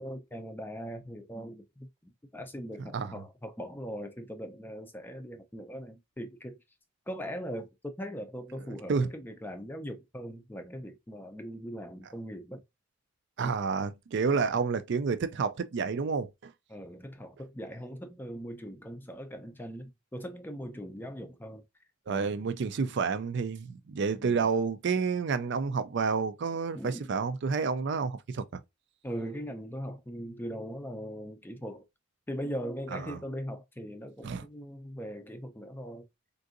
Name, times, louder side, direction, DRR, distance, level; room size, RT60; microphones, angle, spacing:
voice 1, 0.0-6.6 7.1-12.6 16.7-21.6 26.7-27.2 29.0-31.9 32.3-36.1, equal, 10° left, 0.4 m, -40 dB
voice 2, 13.4-16.5 22.1-28.4 32.9-33.2 34.2-34.4, right 5 dB, 55° right, 0.4 m, -29 dB
3.7 x 2.6 x 2.4 m
head